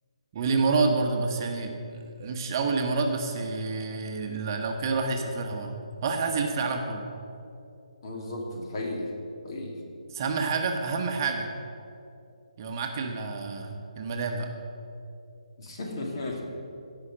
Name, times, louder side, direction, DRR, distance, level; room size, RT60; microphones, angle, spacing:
voice 1, 0.3-1.8 2.2-5.7 6.0-7.0 10.1-11.5 12.6-14.5, right 4 dB, 35° right, 3 dB, 1.1 m, -28 dB
voice 2, 8.0-9.1 9.4-9.7 15.6-16.4, left 2 dB, 45° left, -1 dB, 2.4 m, -34 dB
16.5 x 5.8 x 6.5 m, 2.7 s
figure-of-eight pair, 145°, 3 cm